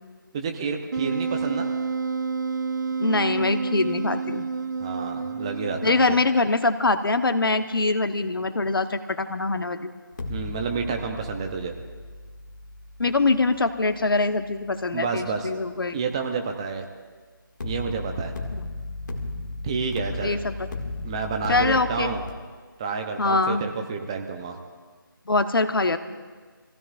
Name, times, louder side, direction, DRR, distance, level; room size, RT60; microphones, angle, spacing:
voice 1, 0.3-1.7 4.8-6.2 10.3-11.7 14.9-15.5 15.9-16.8 17.6-18.3 19.6-20.4 21.0-22.2 22.8-24.6, right 5 dB, 15° right, 4 dB, 0.7 m, -29 dB
Wind instrument woodwind instrument, 0.9-6.3, right 5 dB, 55° right, 0.6 m, -29 dB
voice 2, 3.0-4.5 5.8-9.9 13.0-16.0 18.5-18.6 20.2-20.5 21.5-22.1 23.2-23.6 25.3-26.0, left 3 dB, 75° left, 9 dB, 1.1 m, -23 dB
sound 1, 10.1-15.2 17.6-22.3, left 2 dB, 55° left, 2.1 m, -36 dB
26.5 x 16.0 x 2.5 m, 1.5 s
figure-of-eight pair, 165°, 12 cm